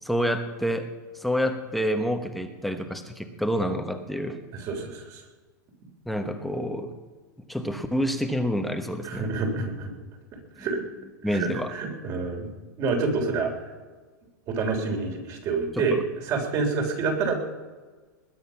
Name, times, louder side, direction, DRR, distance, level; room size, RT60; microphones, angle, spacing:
voice 1, 0.0-0.9 1.1-4.4 6.0-6.9 7.5-9.3 11.2-11.7 15.8-16.0, equal, ahead, 5 dB, 1.2 m, -28 dB
voice 2, 4.5-5.2 9.0-9.9 10.6-10.8 11.2-12.5 12.8-13.5 14.5-16.0 16.2-17.5, right 4 dB, 35° right, 3 dB, 3.6 m, -28 dB
20.5 x 9.2 x 5.8 m, 1.4 s
supercardioid pair, 140°, 10 cm